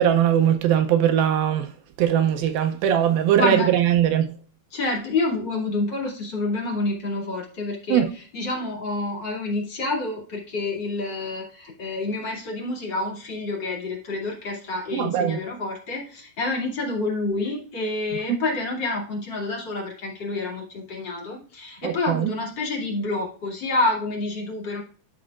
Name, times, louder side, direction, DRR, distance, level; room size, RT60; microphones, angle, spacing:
voice 1, 0.0-1.7 2.0-4.4 7.9-8.1 14.9-15.4 21.8-22.3, right 10 dB, 80° right, 2.3 m, -20 dB
voice 2, 3.4-3.7 4.7-24.8, left 2 dB, 35° left, 2.6 m, -28 dB
12.5 x 5.4 x 2.4 m
omnidirectional pair, 4.5 m